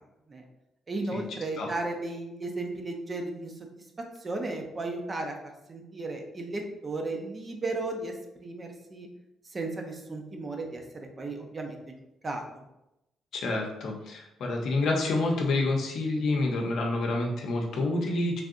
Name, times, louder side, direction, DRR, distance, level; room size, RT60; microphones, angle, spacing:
voice 1, 0.9-3.7 4.2-5.3 5.7-9.1 9.5-11.8 12.2-12.6, right 2 dB, 30° right, 3 dB, 0.5 m, -35 dB
voice 2, 13.3-18.4, left 2 dB, 70° left, 1 dB, 0.6 m, -28 dB
3.3 x 2.6 x 2.5 m, 0.91 s
cardioid pair, 90°, 0 cm